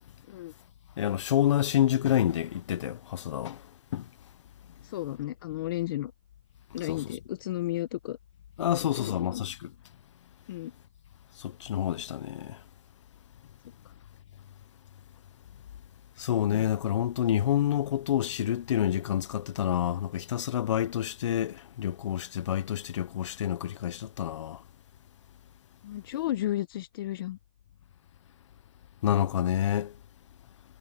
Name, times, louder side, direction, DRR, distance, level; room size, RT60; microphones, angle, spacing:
voice 1, 1.0-3.6 3.9-4.0 6.8-7.2 8.6-9.7 11.4-12.6 16.2-24.6 29.0-29.9, left 11 dB, 75° left, 0.6 m, -28 dB
voice 2, 4.8-6.1 6.7-8.2 9.0-9.4 10.5-10.7 25.8-27.4, left 14 dB, 50° left, 0.9 m, -33 dB
hypercardioid pair, 165°, 15 cm